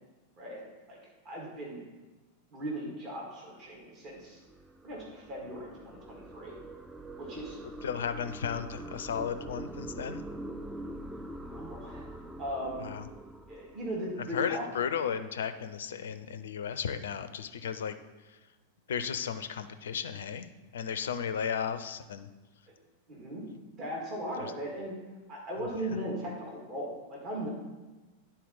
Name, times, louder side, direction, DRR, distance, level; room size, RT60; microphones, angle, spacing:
voice 1, 1.2-1.8 2.5-4.4 4.8-6.6 7.2-7.6 11.4-12.9 13.5-14.7 23.1-23.4 23.7-25.0 25.3-27.5, equal, 35° right, -3 dB, 1.9 m, -38 dB
sound 1, 3.8-14.4, right 1 dB, 5° right, 0.4 m, -44 dB
voice 2, 7.8-10.2 12.8-13.0 14.3-17.9 18.9-20.5 20.7-22.3, left 7 dB, 65° left, 11 dB, 0.4 m, -34 dB
10.0 x 4.3 x 4.0 m, 1.2 s
figure-of-eight pair, 90°, 0 cm